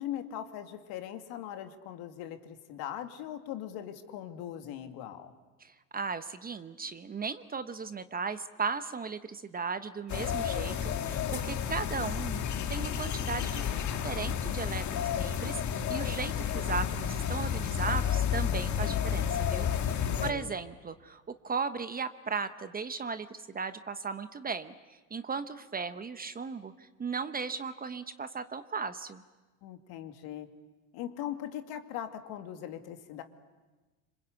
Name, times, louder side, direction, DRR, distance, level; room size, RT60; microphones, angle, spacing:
voice 1, 0.0-5.3 20.1-20.5 29.6-30.5 30.9-33.2, left 11 dB, 55° left, 6 dB, 2.5 m, -40 dB
voice 2, 5.6-12.4 12.7-29.2, right 5 dB, 20° right, 11 dB, 1.0 m, -37 dB
sound 1, 10.1-20.3, left 8 dB, 40° left, 1.7 m, -31 dB
26.5 x 26.0 x 8.4 m, 1.2 s
hypercardioid pair, 100°, 44 cm